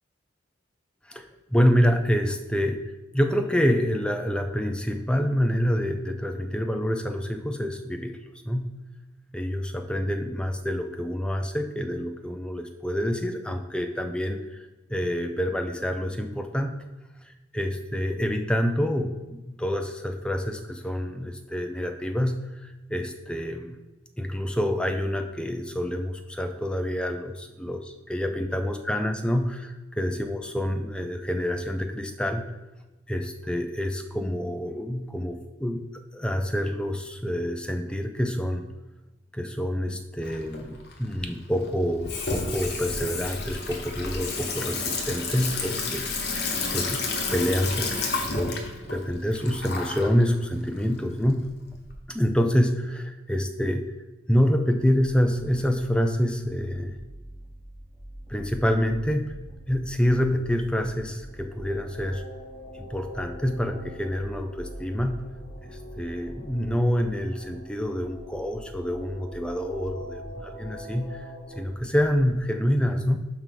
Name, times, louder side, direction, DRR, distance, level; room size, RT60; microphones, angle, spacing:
voice 1, 1.5-8.2 8.4-8.7 9.3-16.8 17.5-19.2 19.5-23.8 24.2-27.8 28.1-29.7 30.0-32.5 33.1-35.8 36.1-38.7 39.3-48.0 48.3-51.5 52.1-53.9 54.3-57.0 58.3-59.3 59.7-62.2 62.7-65.3 65.6-71.3 71.6-73.2, equal, 5° left, 6 dB, 0.4 m, -27 dB
Water tap faucet / Sink (filling or washing), 40.2-51.9, left 3 dB, 55° left, 1.1 m, -31 dB
sound 1, 54.9-72.3, equal, 30° right, 1.7 m, -45 dB
sound 2, 61.1-71.6, equal, 35° left, 1.4 m, -45 dB
5.2 x 4.6 x 5.8 m, 1.1 s
head